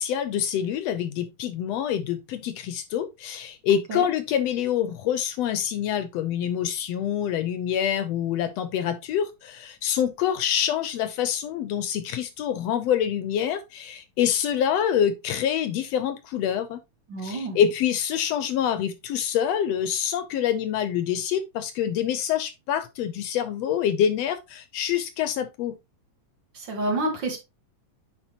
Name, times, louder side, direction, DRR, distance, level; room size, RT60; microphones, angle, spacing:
voice 1, 0.0-16.8 17.2-25.8, left 9 dB, 75° left, 1.7 m, -26 dB
voice 2, 17.1-17.6 26.5-27.4, right 2 dB, 45° right, 1.9 m, -28 dB
9.9 x 4.2 x 2.9 m
omnidirectional pair, 3.4 m